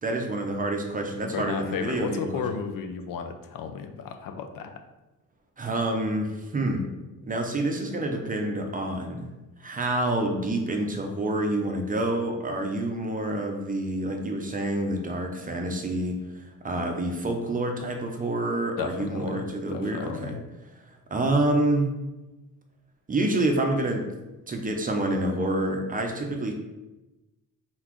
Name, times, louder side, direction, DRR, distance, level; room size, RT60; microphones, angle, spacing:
voice 1, 0.0-2.4 5.6-6.9 7.2-9.3 9.6-20.3 20.8-21.9 23.1-24.1 24.5-26.5, right 1 dB, 25° right, 3 dB, 0.5 m, -28 dB
voice 2, 1.3-4.8 18.8-20.4, left 6 dB, 75° left, 7 dB, 0.5 m, -34 dB
3.9 x 3.8 x 3.0 m, 1.1 s
cardioid pair, 135°, 34 cm